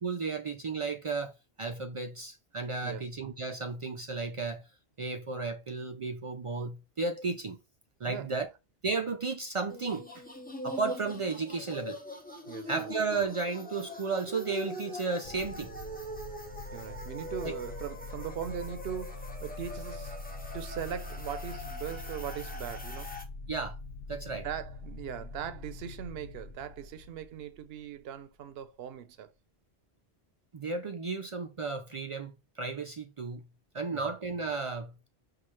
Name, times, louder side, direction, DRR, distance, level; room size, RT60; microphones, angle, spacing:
voice 1, 0.0-1.3 1.6-4.6 5.0-7.6 8.0-8.5 8.8-10.2 10.6-12.0 12.7-15.8 17.4-17.5 23.5-23.8 24.1-24.5 30.5-33.4 33.7-34.9, right 4 dB, 55° right, 0.3 m, -33 dB
voice 2, 8.0-8.4 12.5-12.9 16.7-20.2 20.5-23.2 24.3-29.3 33.9-34.2, right 9 dB, 75° right, 0.8 m, -40 dB
sound 1, 9.7-23.2, left 1 dB, 10° left, 0.6 m, -42 dB
sound 2, 15.2-28.2, left 3 dB, 65° left, 0.8 m, -44 dB
5.7 x 2.4 x 3.1 m
omnidirectional pair, 1.1 m